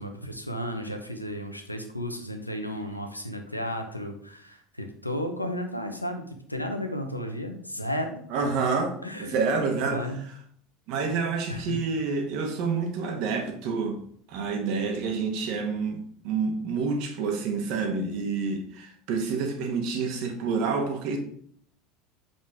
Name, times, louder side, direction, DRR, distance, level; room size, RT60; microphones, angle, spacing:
voice 1, 0.0-8.2 9.0-10.2 11.5-11.8, equal, 90° left, 5 dB, 0.9 m, -34 dB
voice 2, 8.3-8.9 9.2-10.1 10.9-14.0 14.3-21.2, right 4 dB, 50° right, 4 dB, 1.5 m, -28 dB
7.3 x 5.5 x 3.7 m, 0.64 s
figure-of-eight pair, 70°, 0 cm